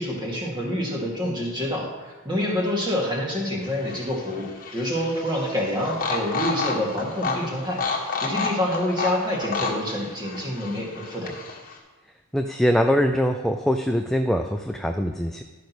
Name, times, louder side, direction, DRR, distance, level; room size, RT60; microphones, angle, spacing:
voice 1, 0.0-11.4, left 1 dB, 20° right, -2 dB, 2.2 m, -27 dB
sound 1, 3.6-11.8, left 4 dB, 40° left, 1.6 m, -31 dB
voice 2, 12.3-15.4, equal, ahead, 4 dB, 0.4 m, -23 dB
12.0 x 5.2 x 6.1 m, 1.3 s
head